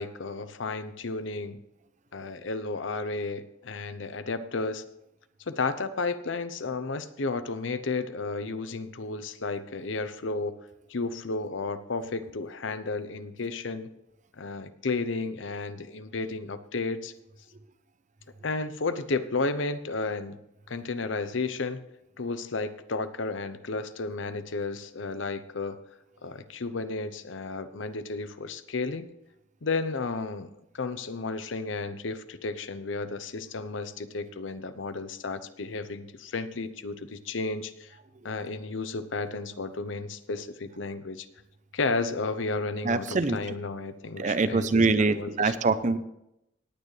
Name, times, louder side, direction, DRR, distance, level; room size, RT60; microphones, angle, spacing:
voice 1, 0.0-1.6 2.1-4.8 5.5-10.6 10.9-13.9 14.3-17.1 18.4-20.4 20.7-21.8 22.2-25.8 26.2-29.1 29.6-38.0 38.2-41.3 41.7-45.5, left 3 dB, 80° left, 12 dB, 0.8 m, -33 dB
voice 2, 42.8-43.4 44.2-46.0, right 3 dB, 40° right, 13 dB, 0.6 m, -24 dB
18.5 x 9.0 x 3.3 m, 0.84 s
head